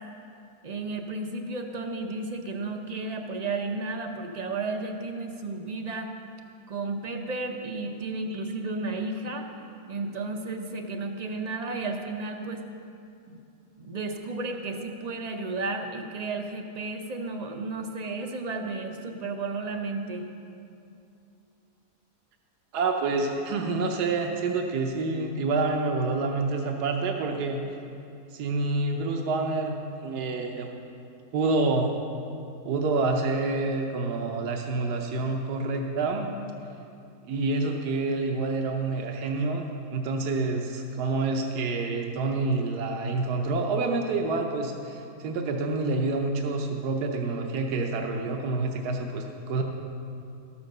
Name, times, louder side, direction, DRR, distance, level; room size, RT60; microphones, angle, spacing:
voice 1, 0.6-6.1 6.7-9.5 9.9-12.6 13.3-13.4 13.8-20.3, right 3 dB, 65° right, 4 dB, 0.4 m, -33 dB
voice 2, 22.7-27.7 28.3-29.8 30.0-30.7 31.3-31.9 32.6-36.3 37.3-49.6, right 3 dB, 80° right, 2 dB, 1.4 m, -28 dB
13.5 x 7.0 x 6.5 m, 2.6 s
omnidirectional pair, 1.7 m